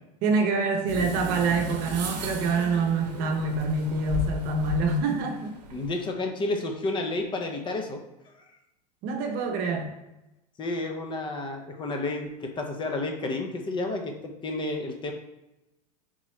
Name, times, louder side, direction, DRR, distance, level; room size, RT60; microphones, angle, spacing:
voice 1, 0.2-5.6 9.0-9.9, right 3 dB, 50° right, 4 dB, 0.8 m, -26 dB
sound 1, 0.9-6.0, right 1 dB, 80° right, 0.7 m, -35 dB
voice 2, 5.7-8.0 10.6-15.1, left 2 dB, 25° left, 4 dB, 0.6 m, -31 dB
3.7 x 3.0 x 3.0 m, 0.94 s
hypercardioid pair, 110°, 21 cm